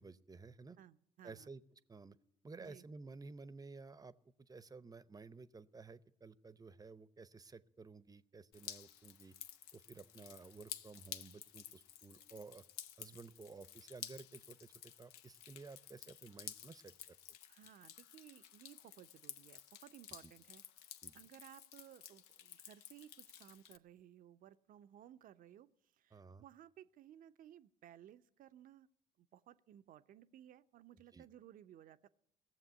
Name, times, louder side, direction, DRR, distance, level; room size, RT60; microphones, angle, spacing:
voice 1, 0.0-0.8 1.2-1.6 1.9-2.2 2.4-9.3 9.7-12.6 13.0-16.9 21.0-21.1 26.1-26.4 31.1-31.3, right 4 dB, 25° right, 17 dB, 0.7 m, -54 dB
voice 2, 0.8-1.5 2.6-2.9 17.5-28.9 29.2-32.1, right 11 dB, 60° right, 13 dB, 0.7 m, -59 dB
Drip, 8.5-23.8, left 10 dB, 80° left, 0.7 m, -53 dB
17.0 x 7.4 x 9.9 m, 0.79 s
hypercardioid pair, 60°, 16 cm